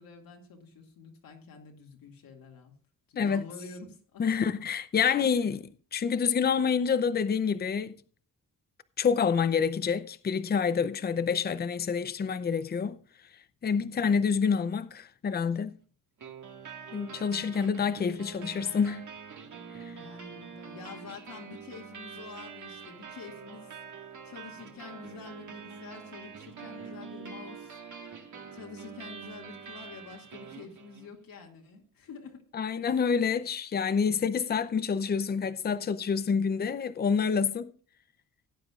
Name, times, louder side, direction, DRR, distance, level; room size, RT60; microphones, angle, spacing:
voice 1, 0.0-2.7 3.1-4.2 13.8-14.3 19.9-23.7 24.2-27.8 28.5-32.4, left 5 dB, 80° left, 2.3 m, -47 dB
voice 2, 4.2-8.0 9.0-13.0 13.6-15.8 16.9-19.1 19.7-20.0 32.5-37.7, left 6 dB, 30° left, 0.6 m, -27 dB
sound 1, 16.2-31.2, right 6 dB, 60° right, 1.8 m, -45 dB
17.0 x 9.4 x 2.4 m
cardioid pair, 125°, 34 cm